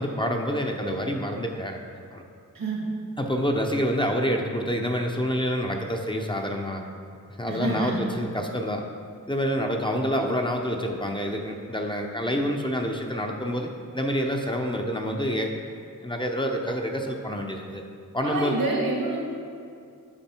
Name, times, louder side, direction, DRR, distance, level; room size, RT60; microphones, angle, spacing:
voice 1, 0.0-1.8 2.1-2.2 3.2-6.8 7.4-8.8 9.3-15.6 16.0-17.8 18.1-18.6, equal, 15° left, 2 dB, 0.6 m, -27 dB
voice 2, 7.5-8.0 18.2-19.2, right 2 dB, 80° right, -2 dB, 1.9 m, -27 dB
8.8 x 5.3 x 4.4 m, 2.4 s
wide cardioid pair, 85°, 34 cm